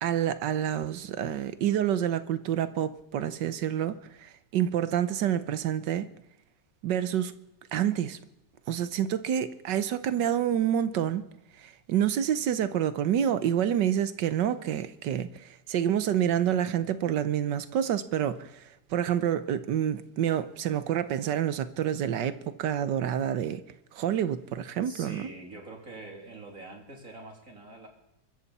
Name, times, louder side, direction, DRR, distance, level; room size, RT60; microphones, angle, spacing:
voice 1, 0.0-6.1 6.8-7.3 7.7-8.2 8.7-11.3 11.6-23.6 23.9-25.3, right 10 dB, 85° right, 1.5 m, -28 dB
voice 2, 24.8-27.9, right 2 dB, 50° right, 3.6 m, -44 dB
23.5 x 13.5 x 4.2 m
omnidirectional pair, 1.9 m